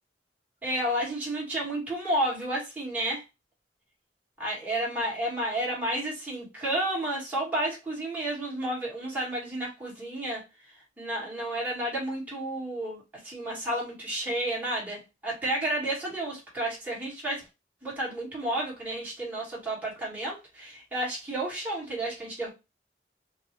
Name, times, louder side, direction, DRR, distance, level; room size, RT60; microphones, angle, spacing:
voice 1, 0.6-3.2 4.4-10.4 11.0-17.4 17.8-22.5, right 1 dB, 10° right, -6 dB, 1.5 m, -31 dB
4.3 x 2.0 x 3.0 m, 0.25 s
head